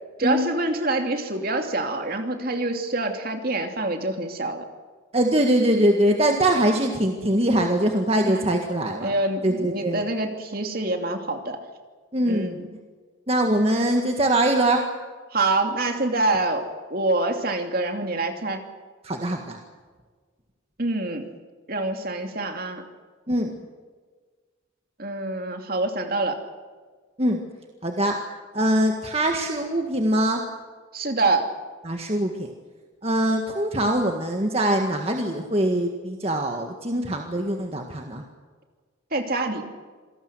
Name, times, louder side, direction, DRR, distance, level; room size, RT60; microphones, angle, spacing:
voice 1, 0.2-4.6 8.2-8.5 9.0-11.6 12.3-12.7 15.3-18.6 20.8-21.3 21.7-22.8 25.0-26.4 30.9-31.5 39.1-39.6, right 2 dB, 45° right, 5 dB, 2.8 m, -26 dB
voice 2, 5.1-9.2 9.4-10.0 12.1-12.6 13.3-14.8 19.0-19.6 23.3-23.5 27.2-27.4 27.8-28.1 28.5-30.4 31.9-32.5 33.0-38.2, right 1 dB, 30° right, 3 dB, 1.8 m, -22 dB
27.0 x 19.0 x 7.9 m, 1.5 s
head